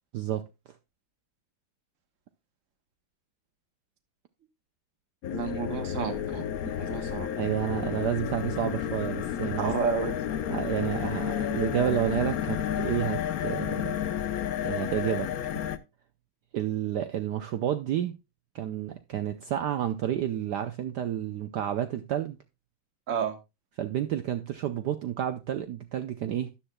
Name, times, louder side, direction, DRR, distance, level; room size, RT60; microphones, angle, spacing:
voice 1, 0.1-0.4 7.4-9.8 10.5-14.0 14.6-15.3 16.5-18.2 18.5-22.4 23.8-26.5, right 10 dB, 65° right, 1.1 m, -30 dB
sound 1, 5.2-15.8, left 9 dB, 65° left, 0.9 m, -31 dB
voice 2, 5.3-7.3 9.6-10.2 23.1-23.4, right 6 dB, 40° right, 1.5 m, -31 dB
13.0 x 9.9 x 2.2 m
omnidirectional pair, 2.3 m